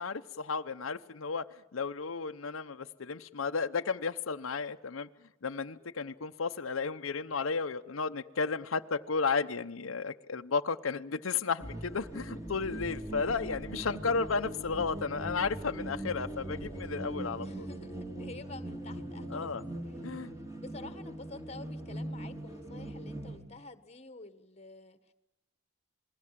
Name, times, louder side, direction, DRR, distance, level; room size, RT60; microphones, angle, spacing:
voice 1, 0.0-1.5 1.7-5.1 5.4-17.7 19.3-19.6 20.0-20.3, left 5 dB, 90° left, 8 dB, 0.8 m, -33 dB
sound 1, 11.6-23.4, right 1 dB, 15° right, 3.3 m, -41 dB
voice 2, 17.4-20.0 20.6-25.1, left 3 dB, 30° left, 12 dB, 1.3 m, -49 dB
27.5 x 21.0 x 7.5 m, 0.97 s
head